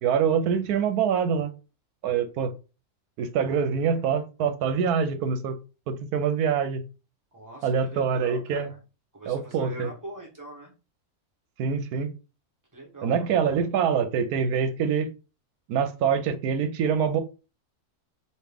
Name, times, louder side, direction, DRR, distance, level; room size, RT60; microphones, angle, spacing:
voice 1, 0.0-1.5 2.0-2.5 3.2-5.6 5.9-6.8 7.6-8.7 9.3-9.9 11.6-12.1 13.0-15.1 15.7-17.2, right 7 dB, 80° right, 1.1 m, -25 dB
voice 2, 7.3-8.8 9.1-10.7 12.7-13.3, right 1 dB, 15° right, 1.1 m, -43 dB
3.1 x 2.6 x 3.5 m
omnidirectional pair, 1.6 m